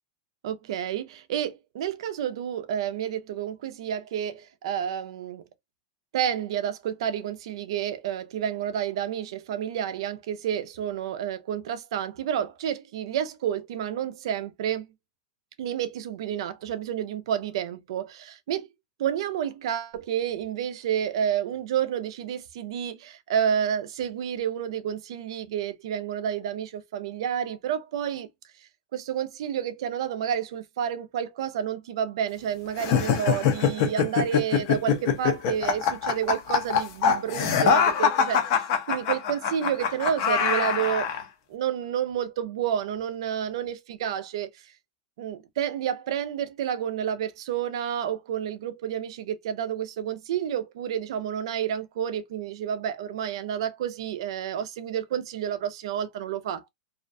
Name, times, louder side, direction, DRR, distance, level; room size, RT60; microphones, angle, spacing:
voice 1, 0.4-5.4 6.1-14.9 15.6-18.7 19.0-28.3 28.9-38.6 38.9-41.1 41.5-44.6 45.2-56.7, right 9 dB, 55° right, 0.4 m, -30 dB
sound 1, 32.8-41.2, left 7 dB, 35° left, 0.5 m, -24 dB
2.4 x 2.1 x 2.5 m
supercardioid pair, 180°, 3 cm